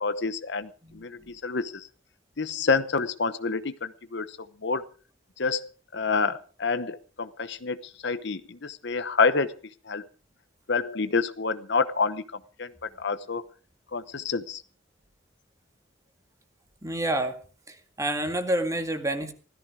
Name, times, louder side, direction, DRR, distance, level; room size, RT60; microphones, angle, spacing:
voice 1, 0.0-1.9 2.4-4.8 5.4-9.5 9.9-10.0 10.7-12.2 12.6-12.7 13.0-13.4 13.9-14.6, left 4 dB, 60° left, 12 dB, 0.9 m, -28 dB
voice 2, 16.8-17.4 17.7-19.3, right 1 dB, 15° right, 6 dB, 2.0 m, -28 dB
16.5 x 14.0 x 4.9 m, 0.39 s
head